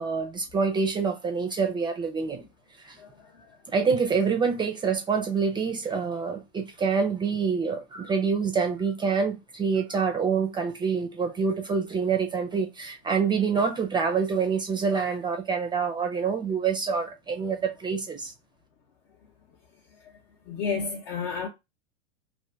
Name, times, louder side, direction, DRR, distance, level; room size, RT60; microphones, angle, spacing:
voice 1, 0.0-2.4 2.8-3.0 3.7-18.3, right 5 dB, 15° right, 0.4 m, -26 dB
voice 2, 3.0-3.6 20.0-20.1 20.4-21.5, left 5 dB, 65° left, 0.9 m, -32 dB
2.6 x 2.5 x 3.1 m
hypercardioid pair, 120°, 32 cm